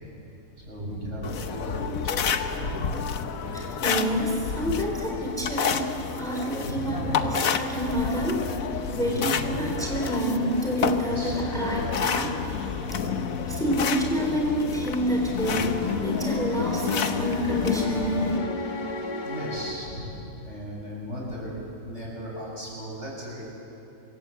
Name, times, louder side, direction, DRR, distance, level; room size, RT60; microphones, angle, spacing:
voice 1, 0.6-3.2 6.6-7.3 8.9-9.6 11.0-11.5 12.8-13.5 15.4-15.6 19.2-23.5, equal, 55° right, -3 dB, 7.1 m, -36 dB
sound 1, 1.2-18.4, left 6 dB, 70° left, 1.4 m, -30 dB
voice 2, 3.5-12.4 12.8-12.9 13.4-18.4, equal, ahead, -1 dB, 3.4 m, -28 dB
sound 2, 15.4-20.3, left 3 dB, 30° left, 1.7 m, -33 dB
26.0 x 22.0 x 8.3 m, 3.0 s
omnidirectional pair, 1.5 m